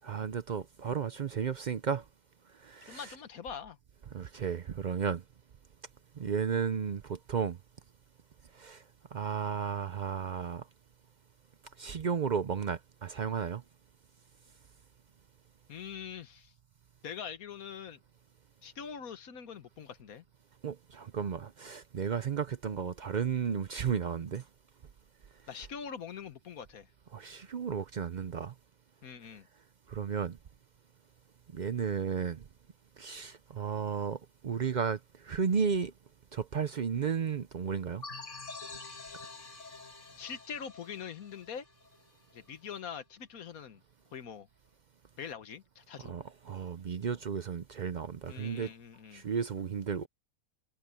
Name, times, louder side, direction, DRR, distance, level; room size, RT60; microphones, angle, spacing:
voice 1, 0.0-2.0 2.6-3.1 4.1-5.2 6.2-7.6 8.5-8.8 9.1-10.6 11.8-13.6 20.6-24.4 27.1-28.5 29.9-30.4 31.5-32.4 33.0-35.9 36.3-38.0 46.0-48.7 49.1-50.1, right 6 dB, 60° right, 0.5 m, -33 dB
voice 2, 2.9-3.8 15.7-16.5 17.0-18.0 18.6-20.2 25.5-26.9 29.0-29.5 40.2-41.6 42.3-43.8 44.1-44.5 45.2-46.2 48.3-49.2, left 7 dB, 75° left, 1.6 m, -43 dB
sound 1, 38.0-42.5, left 3 dB, 55° left, 2.9 m, -47 dB
omnidirectional pair, 1.5 m